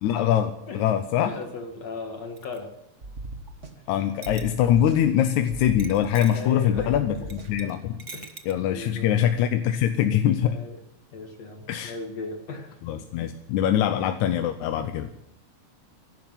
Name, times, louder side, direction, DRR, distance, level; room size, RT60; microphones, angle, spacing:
voice 1, 0.0-1.4 3.9-8.0 8.5-10.6 11.7-12.0 12.8-15.1, left 10 dB, 80° left, 8 dB, 2.2 m, -23 dB
voice 2, 1.2-2.7 6.3-6.9 7.2-7.3 8.1-8.3 8.7-9.1 10.4-10.8 11.1-12.7, left 3 dB, 60° left, 4 dB, 2.8 m, -37 dB
sound 1, 2.4-2.6 4.2-4.8 5.8-6.5 7.3-7.7 8.0-8.5, right 4 dB, 60° right, 0.6 m, -42 dB
sound 2, 3.0-4.0 4.3-5.2 5.5-6.5 6.8-7.7, right 2 dB, 35° right, 1.3 m, -39 dB
15.5 x 12.0 x 7.5 m, 0.83 s
omnidirectional pair, 3.4 m